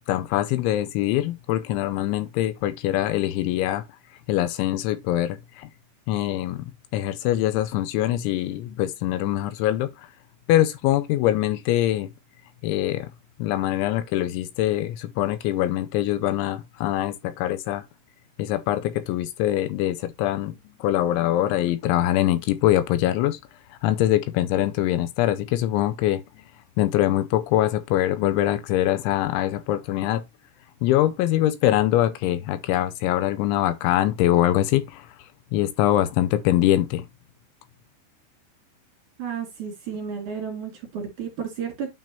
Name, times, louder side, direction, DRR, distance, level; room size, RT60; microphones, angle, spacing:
voice 1, 0.1-3.8 4.3-5.7 6.1-9.9 10.5-12.1 12.6-13.1 13.4-17.8 18.4-20.6 20.8-23.4 23.8-26.2 26.8-30.2 30.8-35.1 35.5-37.0, left 13 dB, 85° left, 3.0 m, -23 dB
voice 2, 39.2-41.9, right 7 dB, 50° right, 2.8 m, -32 dB
9.1 x 5.1 x 2.8 m
omnidirectional pair, 5.5 m